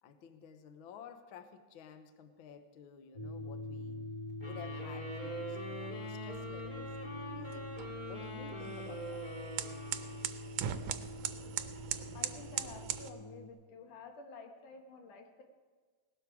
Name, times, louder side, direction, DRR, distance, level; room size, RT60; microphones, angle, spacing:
voice 1, 0.0-4.1 4.4-7.7 8.0-9.2, left 6 dB, 65° left, 8 dB, 1.2 m, -52 dB
sound 1, 3.1-13.5, left 1 dB, 50° left, 1.1 m, -45 dB
sound 2, 4.4-10.8, right 1 dB, 15° left, 2.1 m, -45 dB
sound 3, 6.3-13.1, right 11 dB, 75° right, 1.8 m, -41 dB
voice 2, 12.1-15.4, left 4 dB, 85° left, 3 dB, 3.0 m, -51 dB
18.5 x 12.5 x 4.8 m, 1.4 s
omnidirectional pair, 3.5 m